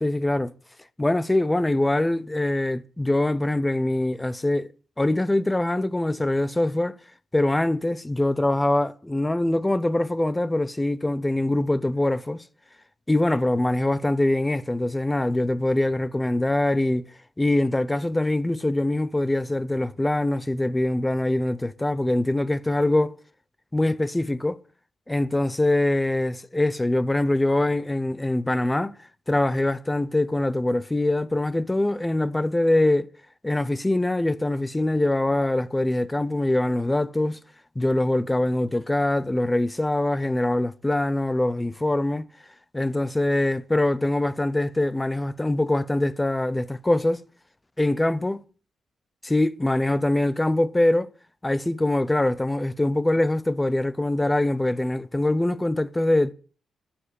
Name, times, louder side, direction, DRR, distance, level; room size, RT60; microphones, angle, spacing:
voice 1, 0.0-0.5 1.0-4.7 5.0-7.0 7.3-12.4 13.1-17.1 17.4-23.2 23.7-24.6 25.1-29.0 29.3-33.1 33.4-37.4 37.8-42.3 42.7-47.2 47.8-48.4 49.2-51.1 51.4-56.3, left 1 dB, 10° left, 0.6 m, -23 dB
11.5 x 9.8 x 8.2 m
wide cardioid pair, 160°, 0 cm